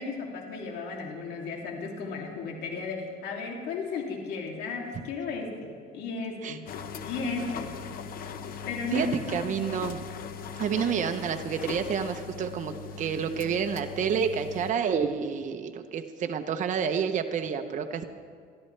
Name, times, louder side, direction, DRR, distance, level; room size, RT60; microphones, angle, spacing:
voice 1, 0.0-6.6 7.0-7.6 8.6-9.6, left 4 dB, 80° left, 0 dB, 2.8 m, -34 dB
sound 1, 6.7-14.7, left 6 dB, 60° left, 0.9 m, -39 dB
voice 2, 8.9-10.0 10.6-18.0, right 7 dB, 50° right, 6 dB, 0.9 m, -29 dB
22.0 x 13.5 x 3.4 m, 2.2 s
cardioid pair, 110°, 17 cm